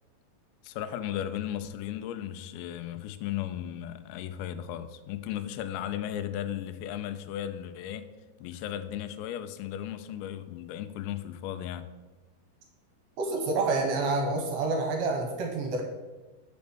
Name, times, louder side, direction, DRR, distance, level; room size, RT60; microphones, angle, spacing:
voice 1, 0.6-8.1 8.4-11.9, left 11 dB, 90° left, 2.8 m, -35 dB
voice 2, 13.2-15.8, right 3 dB, 70° right, 2.5 m, -28 dB
6.7 x 5.2 x 6.8 m
omnidirectional pair, 4.9 m